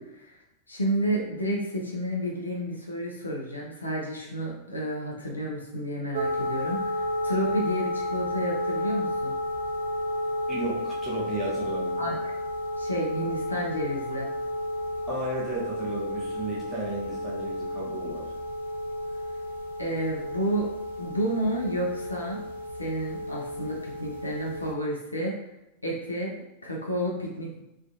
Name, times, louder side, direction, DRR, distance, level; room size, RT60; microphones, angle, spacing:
voice 1, 0.7-9.3 12.0-12.3 12.8-14.3 19.8-20.7 21.0-22.4 22.8-25.4 25.8-26.3 26.6-27.6, equal, 85° left, -2 dB, 0.6 m, -30 dB
sound 1, 6.1-24.8, left 1 dB, 65° right, 0.3 m, -32 dB
voice 2, 10.5-12.1 15.1-18.3, right 2 dB, 10° right, -8 dB, 1.1 m, -34 dB
3.2 x 2.4 x 2.6 m, 0.90 s
figure-of-eight pair, 90°, 0 cm